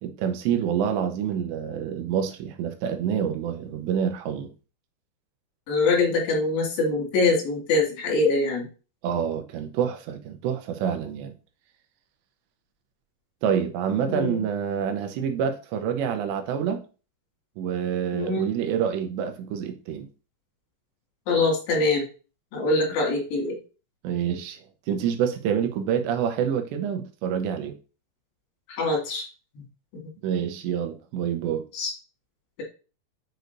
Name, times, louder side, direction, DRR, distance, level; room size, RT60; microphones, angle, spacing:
voice 1, 0.0-4.5 9.0-11.3 13.4-16.8 17.6-20.1 24.0-24.6 24.9-27.7 30.2-31.6, right 8 dB, 80° right, 2.9 m, -27 dB
voice 2, 5.7-8.7 14.1-14.4 18.1-18.5 21.3-22.1 22.5-23.6 28.7-29.3 29.6-29.7 31.7-31.9, left 3 dB, 70° left, 4.4 m, -24 dB
8.0 x 6.2 x 2.7 m
omnidirectional pair, 5.4 m